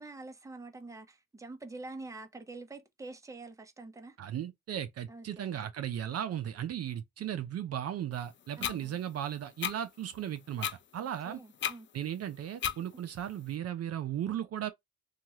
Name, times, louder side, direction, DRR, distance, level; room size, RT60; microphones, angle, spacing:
voice 1, 0.0-4.2 5.1-5.7 8.6-9.0 11.0-11.9, right 3 dB, 10° right, 0.7 m, -46 dB
voice 2, 4.2-11.4 11.9-14.7, right 10 dB, 55° right, 0.5 m, -36 dB
sound 1, 8.6-8.8 9.6-9.8 10.6-10.8 11.6-11.8 12.6-12.8, left 8 dB, 40° left, 0.5 m, -32 dB
2.9 x 2.3 x 2.7 m
cardioid pair, 90°, 30 cm